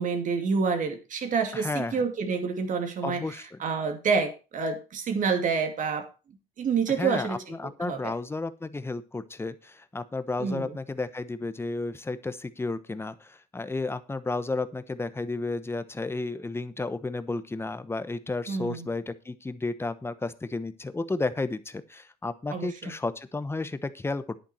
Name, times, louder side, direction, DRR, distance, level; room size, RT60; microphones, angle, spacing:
voice 1, 0.0-6.1 6.6-8.1 10.4-10.8 18.5-18.9 22.5-22.9, right 5 dB, 50° right, 6 dB, 2.6 m, -28 dB
voice 2, 1.5-2.0 3.0-3.6 7.0-24.4, left 3 dB, 15° left, 13 dB, 1.0 m, -32 dB
10.5 x 9.0 x 4.4 m, 0.31 s
cardioid pair, 110°, 17 cm